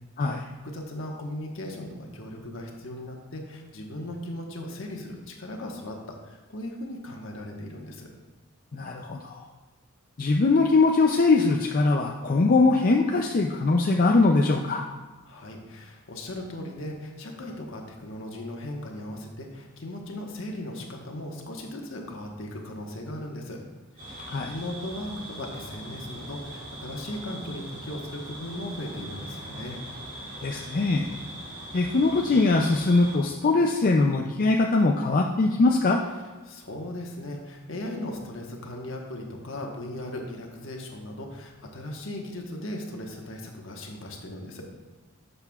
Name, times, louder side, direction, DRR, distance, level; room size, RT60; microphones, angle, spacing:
voice 1, 0.2-8.1 15.2-23.6 24.0-29.8 36.4-44.7, left 1 dB, 65° left, 1 dB, 1.2 m, -37 dB
voice 2, 8.7-9.4 10.2-14.8 24.3-24.5 30.4-31.1 31.7-36.0, left 3 dB, 40° left, 1 dB, 0.4 m, -22 dB
sound 1, 24.0-33.2, right 1 dB, 40° right, 2.4 m, -41 dB
11.0 x 6.8 x 2.4 m, 1.3 s
head